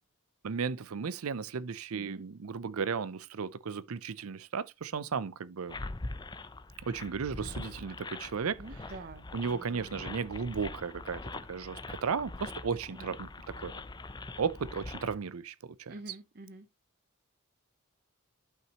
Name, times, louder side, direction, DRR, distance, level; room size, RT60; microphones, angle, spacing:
voice 1, 0.4-5.8 6.8-8.6 9.3-13.8 14.4-15.9, right 5 dB, 85° right, 0.5 m, -35 dB
voice 2, 1.9-2.2 8.3-10.0 12.9-13.2 15.9-16.7, right 2 dB, 50° right, 0.9 m, -48 dB
sound 1, 5.7-15.1, left 2 dB, 20° left, 0.5 m, -43 dB
11.0 x 5.8 x 2.9 m
head